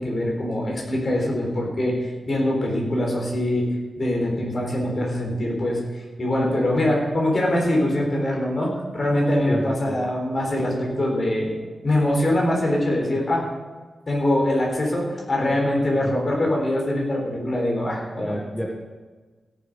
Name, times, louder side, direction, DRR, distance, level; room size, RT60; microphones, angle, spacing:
voice 1, 0.0-3.7 4.0-11.5 11.8-13.4 14.1-18.3, left 1 dB, 40° left, -1 dB, 4.2 m, -23 dB
voice 2, 9.4-10.0 16.0-16.1 18.2-18.7, equal, 10° left, -1 dB, 1.4 m, -29 dB
16.5 x 7.5 x 5.4 m, 1.3 s
wide cardioid pair, 100°, 0 cm